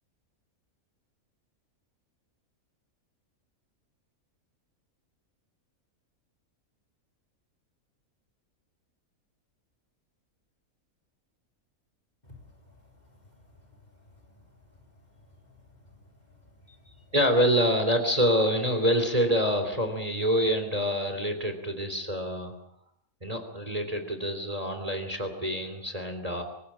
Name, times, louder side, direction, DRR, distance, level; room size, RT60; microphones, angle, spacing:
voice 1, 12.2-12.8 13.2-14.4 15.1-15.8, left 2 dB, 30° left, 5 dB, 3.9 m, -56 dB
voice 2, 17.1-22.5 23.2-26.4, equal, 25° right, 7 dB, 3.1 m, -26 dB
25.5 x 16.0 x 8.6 m, 0.71 s
omnidirectional pair, 1.5 m